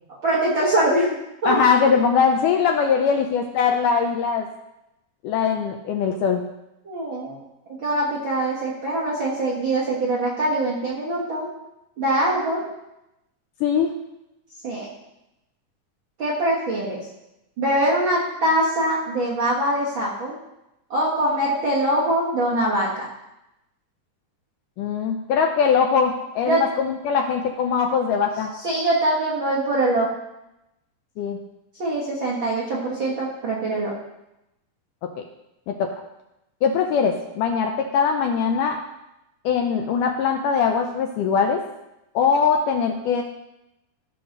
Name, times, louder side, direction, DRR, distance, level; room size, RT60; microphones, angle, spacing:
voice 1, 0.2-1.2 1.4-1.6 6.8-7.4 7.8-11.5 12.0-12.6 14.6-14.9 16.2-17.0 17.6-20.3 20.9-23.1 26.5-26.6 28.6-30.1 31.8-33.9, right 1 dB, 55° right, -6 dB, 1.4 m, -23 dB
voice 2, 1.5-4.5 5.2-6.4 13.6-13.9 24.8-28.5 31.2-31.4 35.0-35.1 35.7-35.9 36.6-38.8 39.5-41.6 42.2-43.2, left 6 dB, 80° left, 4 dB, 1.9 m, -21 dB
14.0 x 5.9 x 3.8 m, 0.90 s
omnidirectional pair, 4.2 m